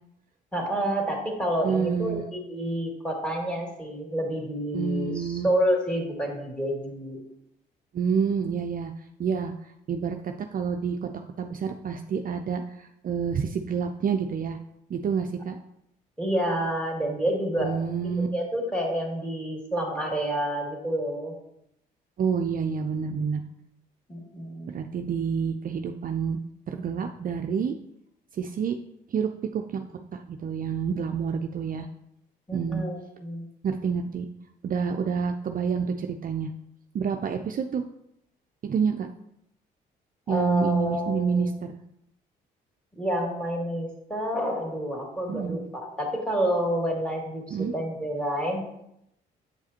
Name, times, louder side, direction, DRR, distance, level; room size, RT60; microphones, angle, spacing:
voice 1, 0.5-7.2 16.2-17.7 18.0-21.3 24.1-24.8 32.5-33.4 40.3-41.5 43.0-48.6, equal, 5° left, -1 dB, 2.4 m, -29 dB
voice 2, 1.6-2.2 4.7-5.5 7.9-8.9 9.2-9.5 9.9-11.1 11.4-14.6 14.9-15.6 17.6-18.3 22.2-23.4 24.7-26.4 26.7-27.7 28.3-28.8 29.1-29.8 30.1-31.9 32.5-32.8 33.6-34.3 34.6-36.5 36.9-37.8 38.6-39.1 40.3-41.8 45.3-45.6 47.5-47.7, right 6 dB, 45° right, 5 dB, 0.5 m, -28 dB
8.2 x 4.7 x 2.9 m, 0.78 s
supercardioid pair, 55°, 20 cm